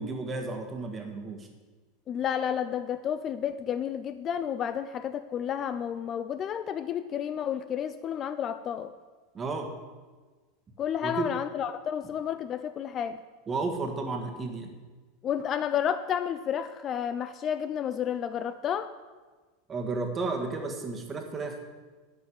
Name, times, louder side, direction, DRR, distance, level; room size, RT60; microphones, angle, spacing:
voice 1, 0.0-1.5 9.3-9.7 11.0-11.3 13.5-14.7 19.7-21.6, right 3 dB, 20° right, 3 dB, 1.7 m, -32 dB
voice 2, 2.1-8.9 10.8-13.2 15.2-18.9, left 9 dB, 30° left, 12 dB, 0.4 m, -31 dB
11.5 x 5.4 x 8.7 m, 1.3 s
supercardioid pair, 140°, 0 cm